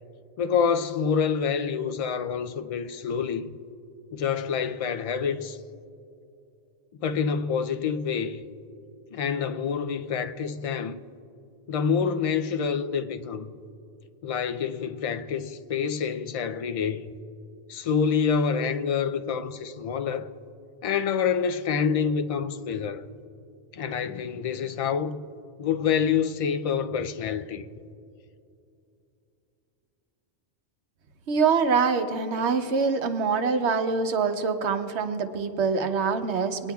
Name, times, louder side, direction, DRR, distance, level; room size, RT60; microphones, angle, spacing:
voice 1, 0.4-3.5 4.1-5.6 7.0-8.4 9.1-11.0 11.7-13.5 14.2-17.1 17.7-20.3 20.8-23.1 23.7-25.2 25.6-27.7, left 6 dB, 50° left, 0.4 m, -27 dB
voice 2, 31.3-36.7, right 5 dB, 90° right, 1.0 m, -25 dB
25.5 x 9.9 x 2.3 m
omnidirectional pair, 1.1 m